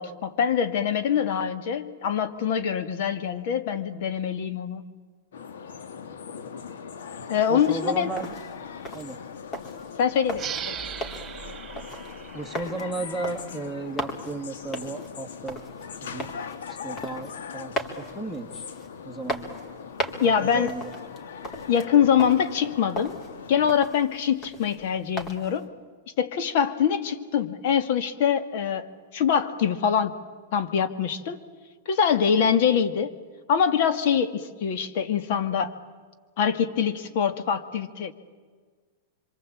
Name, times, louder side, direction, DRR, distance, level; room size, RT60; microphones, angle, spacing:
voice 1, 0.0-4.8 7.3-8.1 10.0-10.8 20.2-20.8 21.7-23.2 23.5-25.7 26.2-28.9 29.1-30.1 30.5-31.4 31.9-33.1 33.5-35.8 36.4-38.1, left 7 dB, 60° left, 10 dB, 2.2 m, -24 dB
sound 1, 5.3-23.8, left 6 dB, 80° left, 1.7 m, -40 dB
voice 2, 7.5-8.3 8.9-9.2 12.3-15.6 16.0-16.3 16.7-18.6 19.0-19.6 20.2-21.0, right 3 dB, 5° left, 8 dB, 2.3 m, -35 dB
sound 2, 7.6-25.7, equal, 25° left, 3.6 m, -39 dB
sound 3, 10.3-13.6, right 9 dB, 20° right, 3.4 m, -38 dB
26.0 x 24.5 x 8.7 m, 1.5 s
hypercardioid pair, 130°, 0 cm